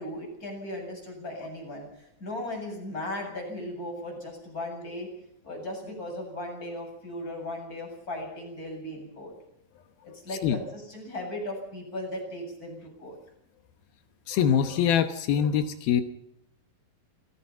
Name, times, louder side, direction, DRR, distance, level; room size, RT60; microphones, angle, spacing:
voice 1, 0.0-5.1 5.4-9.3 10.1-13.2, left 1 dB, 20° left, 1 dB, 8.1 m, -37 dB
voice 2, 14.3-16.0, left 8 dB, 85° left, 8 dB, 3.0 m, -24 dB
28.0 x 17.5 x 5.7 m, 0.78 s
omnidirectional pair, 4.2 m